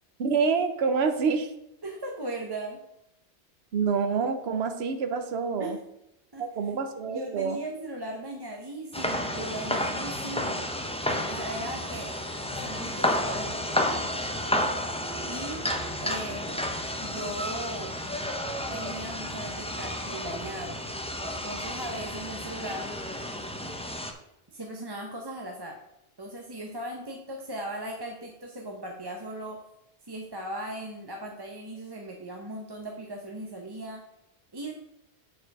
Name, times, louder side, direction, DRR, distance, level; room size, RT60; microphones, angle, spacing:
voice 1, 0.2-1.5 3.7-5.8 6.4-7.6, right 5 dB, 70° right, 8 dB, 1.1 m, -27 dB
voice 2, 1.8-2.8 5.6-5.8 6.3-6.7 7.1-10.7 11.1-12.1 12.5-14.5 15.3-15.6 16.0-16.6 17.0-17.9 18.7-20.8 21.4-22.9 24.5-25.8 26.2-29.6 30.1-34.0 34.5-34.7, right 1 dB, 25° right, 0 dB, 0.8 m, -38 dB
sound 1, 8.9-24.1, left 1 dB, 5° left, 0.6 m, -31 dB
8.8 x 4.7 x 4.7 m, 0.84 s
omnidirectional pair, 1.1 m